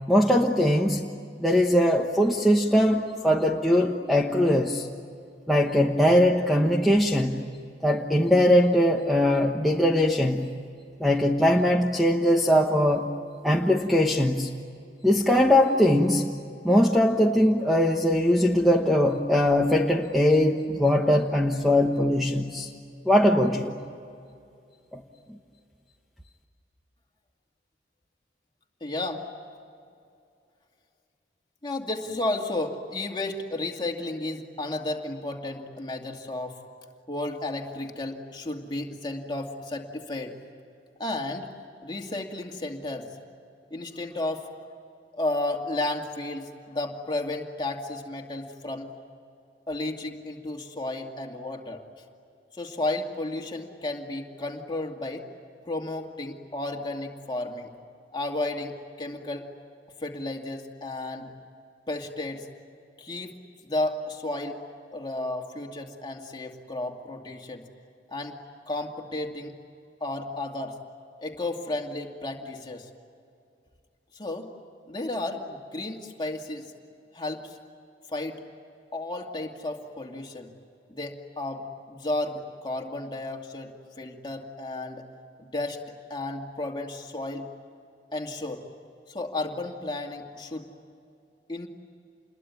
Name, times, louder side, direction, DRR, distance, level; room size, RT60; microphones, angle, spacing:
voice 1, 0.1-1.1 1.4-4.9 5.5-7.4 7.8-10.5 11.0-13.1 13.4-14.5 15.0-16.3 16.6-22.7 23.0-23.7 24.9-25.0, left 1 dB, ahead, 1 dB, 1.1 m, -21 dB
voice 2, 28.8-29.3 31.6-36.6 37.1-40.3 41.0-41.5 41.8-43.1 43.7-44.5 45.1-48.9 49.7-51.8 52.6-55.2 55.7-57.7 58.1-59.5 60.0-61.3 61.9-62.5 63.0-63.3 63.6-64.6 64.9-67.6 68.1-68.4 68.7-69.5 70.0-70.8 71.2-72.9 74.1-74.5 74.9-76.7 77.1-77.6 78.1-78.4 78.9-80.5 80.9-83.7 84.0-85.0 85.4-85.8 86.1-87.5 88.1-88.6 89.1-90.7 91.5-91.7, left 2 dB, 25° left, 1 dB, 2.3 m, -33 dB
28.5 x 21.5 x 9.6 m, 2.5 s
head